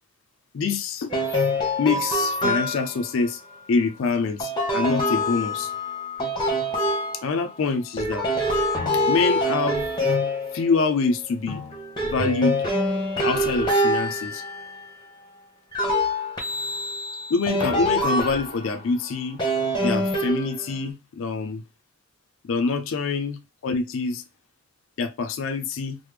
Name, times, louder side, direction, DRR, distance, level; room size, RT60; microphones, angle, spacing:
voice 1, 0.5-1.1 1.8-3.4 3.7-5.7 7.2-8.3 9.1-9.9 10.5-11.6 12.0-12.6 13.2-14.4 17.3-19.4 19.8-21.6 22.4-24.2 25.0-26.0, left 4 dB, 60° left, 0.4 m, -25 dB
sound 1, 1.1-3.1 4.4-7.6 8.0-11.0 11.5-15.0 15.7-18.8 19.4-20.8, left 1 dB, 20° left, 0.7 m, -25 dB
3.2 x 2.0 x 3.3 m
head